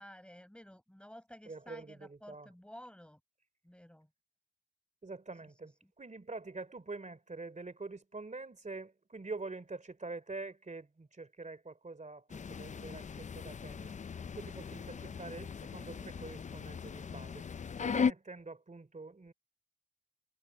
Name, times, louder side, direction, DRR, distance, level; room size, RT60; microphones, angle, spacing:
voice 1, 0.0-3.2 3.6-4.1, equal, 5° left, 4.8 m, -53 dB
voice 2, 1.4-2.5 5.0-14.0 14.3-19.3, right 3 dB, 35° right, 3.1 m, -46 dB
sound 1, 12.3-18.1, left 6 dB, 35° left, 0.4 m, -38 dB
wide cardioid pair, 90°, 21 cm